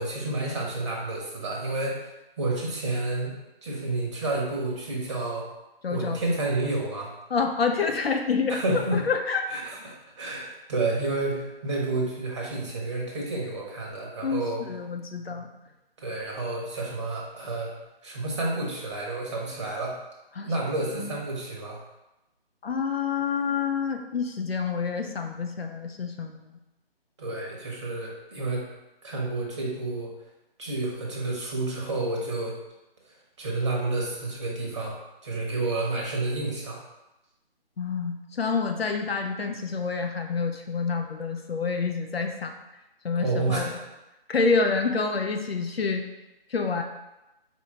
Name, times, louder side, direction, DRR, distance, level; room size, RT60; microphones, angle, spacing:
voice 1, 0.0-2.1 2.4-5.4 5.9-7.1 8.5-9.0 9.5-14.6 16.0-17.7 18.0-19.9 20.4-21.8 27.2-28.7 29.0-30.1 30.6-32.6 33.4-35.0 35.2-36.8 43.2-43.9, right 2 dB, 30° right, -2 dB, 0.9 m, -30 dB
voice 2, 5.8-6.2 7.3-8.6 8.9-9.4 14.2-15.5 20.4-20.5 21.0-21.1 22.6-26.5 37.8-42.5 43.0-43.7 44.3-46.0 46.5-46.8, left 5 dB, 75° left, 4 dB, 0.6 m, -28 dB
4.3 x 2.4 x 4.2 m, 0.98 s
figure-of-eight pair, 150°, 30 cm